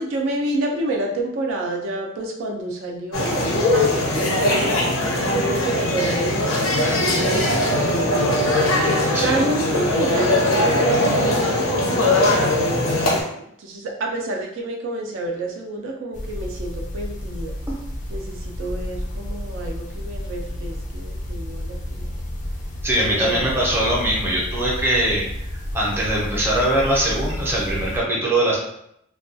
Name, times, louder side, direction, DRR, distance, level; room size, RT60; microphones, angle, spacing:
voice 1, 0.0-8.2 9.2-13.3 13.6-17.6 18.1-22.1 23.0-23.5, right 2 dB, 65° right, 0 dB, 0.4 m, -29 dB
sound 1, 3.1-13.2, left 1 dB, 85° left, 0.6 m, -20 dB
sound 2, 16.1-28.0, left 1 dB, 40° left, 0.4 m, -31 dB
voice 2, 22.8-25.2 25.7-28.6, right 1 dB, 10° right, -5 dB, 0.6 m, -21 dB
2.3 x 2.2 x 2.5 m, 0.76 s
head